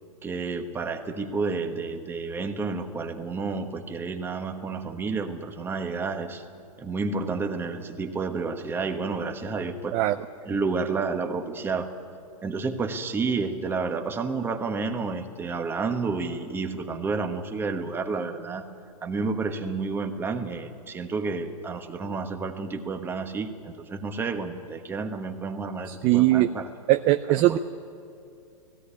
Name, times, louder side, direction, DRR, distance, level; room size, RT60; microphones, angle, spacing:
voice 1, 0.2-6.4 6.8-10.0 10.4-11.9 12.4-18.7 19.0-26.7 27.3-27.6, right 4 dB, 10° right, 6 dB, 1.2 m, -30 dB
voice 2, 25.9-26.5 26.9-27.6, right 16 dB, 30° right, 10 dB, 0.5 m, -20 dB
17.0 x 16.5 x 9.8 m, 2.6 s
hypercardioid pair, 140°, 18 cm